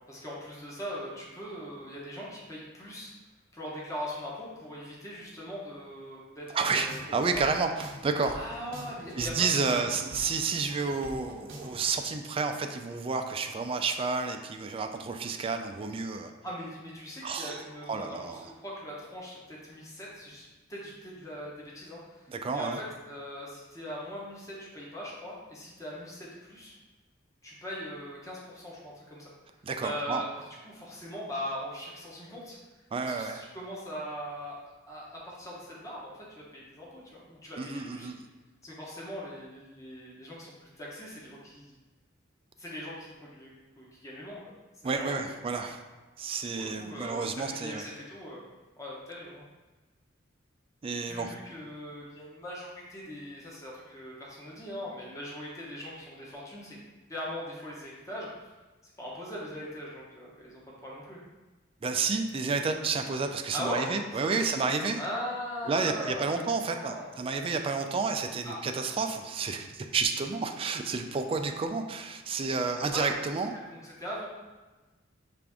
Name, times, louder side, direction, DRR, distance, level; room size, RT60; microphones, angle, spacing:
voice 1, 0.1-3.1 3.5-7.0 8.3-9.8 16.4-26.8 27.4-29.3 29.8-30.3 30.6-32.6 33.0-34.6 34.9-38.1 38.6-41.7 42.6-44.4 44.8-45.6 46.5-48.5 48.8-49.4 51.1-56.8 57.1-58.3 58.8-61.2 63.5-64.7 64.9-67.1 68.4-68.6 72.6-73.1 73.4-74.3, equal, 15° left, -5 dB, 0.9 m, -40 dB
voice 2, 6.5-8.4 9.2-16.3 17.2-17.6 17.9-18.5 22.3-22.8 29.6-30.2 32.9-33.4 37.6-38.2 44.8-45.8 46.2-47.8 50.8-51.3 61.8-65.0 65.7-73.5, right 4 dB, 30° right, 5 dB, 0.3 m, -30 dB
sound 1, 6.7-11.9, right 1 dB, 70° right, 0.7 m, -45 dB
5.8 x 2.5 x 3.5 m, 1.2 s
head